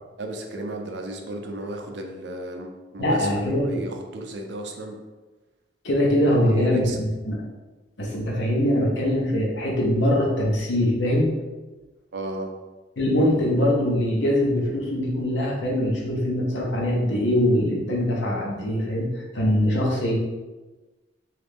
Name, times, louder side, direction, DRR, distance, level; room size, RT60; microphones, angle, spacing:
voice 1, 0.2-5.0 6.3-7.0 12.1-12.5, right 1 dB, 65° right, 4 dB, 0.5 m, -34 dB
voice 2, 3.0-3.9 5.8-7.4 8.0-11.3 13.0-20.2, left 1 dB, 75° left, -2 dB, 0.8 m, -22 dB
2.9 x 2.4 x 3.5 m, 1.2 s
head